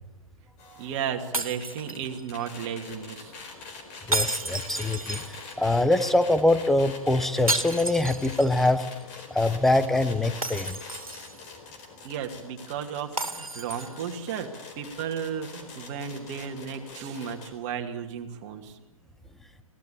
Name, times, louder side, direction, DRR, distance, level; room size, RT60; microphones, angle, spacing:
sound 1, 0.6-17.5, left 4 dB, 30° left, 4.2 m, -44 dB
voice 1, 0.8-3.3 12.0-14.5 14.8-18.8, right 8 dB, 30° right, 4 dB, 2.4 m, -34 dB
sound 2, 1.3-2.4 4.1-5.7 7.5-8.7 9.0-9.1 10.4-11.5 13.2-14.1, right 2 dB, 80° right, 2.2 m, -32 dB
voice 2, 4.1-8.8 9.3-10.8, left 2 dB, ahead, 12 dB, 0.8 m, -24 dB
25.0 x 17.0 x 8.6 m, 1.0 s
figure-of-eight pair, 125°, 18 cm